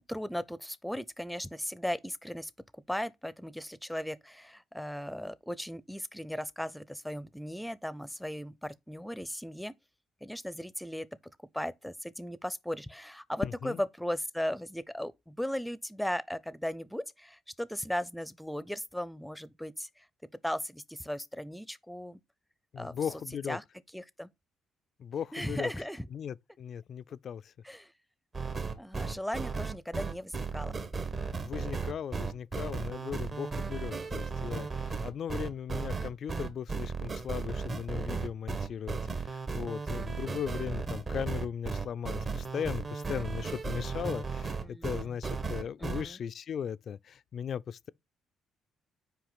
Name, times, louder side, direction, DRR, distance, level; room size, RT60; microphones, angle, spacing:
voice 1, 0.1-9.7 10.2-11.1 11.5-20.1 20.4-22.2 22.8-22.9 23.5-23.6 23.9-24.3 25.3-26.1 27.6-27.9 28.8-30.8 44.4-45.2 45.8-46.2, equal, 5° left, 0.6 m, -37 dB
voice 2, 13.4-13.8 22.7-23.6 25.0-25.7 26.1-27.5 31.4-47.9, left 8 dB, 55° left, 0.3 m, -37 dB
sound 1, 28.3-46.0, right 4 dB, 40° right, 1.3 m, -35 dB
5.8 x 4.9 x 5.7 m
hypercardioid pair, 50°, 0 cm